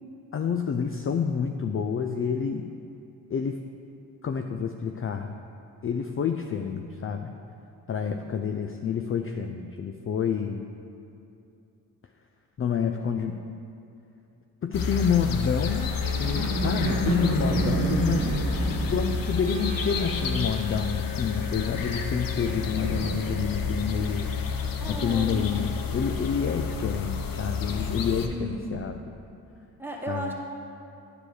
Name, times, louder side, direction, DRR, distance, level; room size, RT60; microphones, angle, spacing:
voice 1, 0.3-2.7 3.3-3.6 4.2-5.4 5.8-7.3 7.9-10.7 12.6-13.4 14.6-18.3 18.9-24.3 24.9-29.0 30.1-30.3, left 6 dB, 35° left, 5 dB, 0.4 m, -28 dB
sound 1, 14.7-28.3, left 5 dB, 55° left, 0.8 m, -30 dB
sound 2, 15.6-21.2 21.5-23.8, right 3 dB, 45° right, 1.3 m, -31 dB
voice 2, 17.7-18.5 24.8-25.3 28.2-28.9 29.8-30.3, right 1 dB, 5° right, -1 dB, 1.5 m, -35 dB
9.6 x 5.0 x 4.7 m, 2.7 s
supercardioid pair, 50°, 41 cm